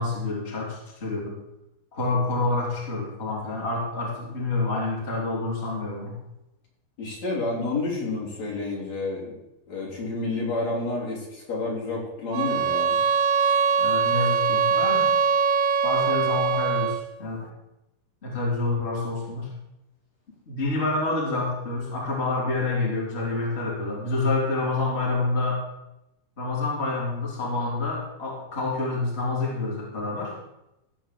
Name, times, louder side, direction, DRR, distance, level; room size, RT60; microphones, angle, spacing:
voice 1, 0.0-1.4 1.9-6.2 13.8-15.1 15.8-17.5 18.2-19.5 20.5-25.6 26.4-30.3, left 3 dB, 20° left, -4 dB, 3.2 m, -28 dB
voice 2, 7.0-9.3 9.7-13.0, left 3 dB, 50° left, -4 dB, 4.4 m, -29 dB
sound 1, 12.3-17.1, right 6 dB, 75° right, 1.9 m, -22 dB
16.0 x 5.4 x 7.6 m, 0.90 s
omnidirectional pair, 4.1 m